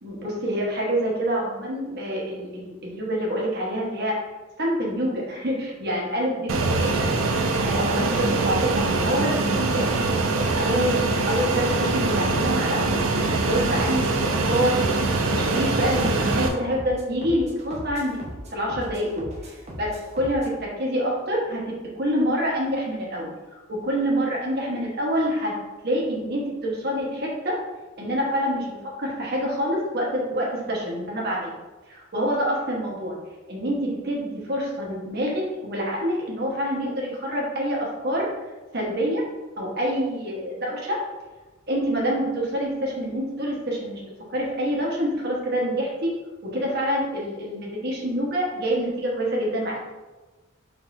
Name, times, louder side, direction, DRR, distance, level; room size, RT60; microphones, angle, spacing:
voice 1, 0.0-4.2 4.6-6.9 7.6-18.2 18.5-25.6 25.8-27.6 28.0-31.5 31.9-33.2 33.5-38.3 38.7-39.2 39.6-41.0 41.7-46.2 46.4-49.8, equal, 50° right, -3 dB, 1.2 m, -27 dB
Fixed-wing aircraft airplane, 6.5-16.5, right 3 dB, 80° right, 0.5 m, -23 dB
sound 1, 12.8-20.6, equal, 35° right, 0.8 m, -39 dB
5.1 x 3.5 x 2.6 m, 1.2 s
head